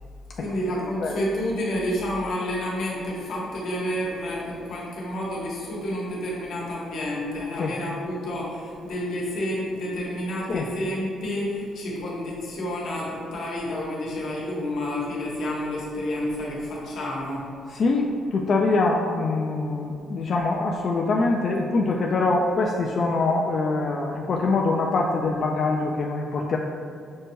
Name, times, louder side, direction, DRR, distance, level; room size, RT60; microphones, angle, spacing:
voice 1, 0.3-17.4, left 1 dB, 70° left, -4 dB, 1.1 m, -29 dB
voice 2, 17.7-26.6, left 3 dB, 55° left, 0 dB, 0.3 m, -24 dB
6.3 x 2.2 x 3.0 m, 2.3 s
cardioid pair, 90°, 0 cm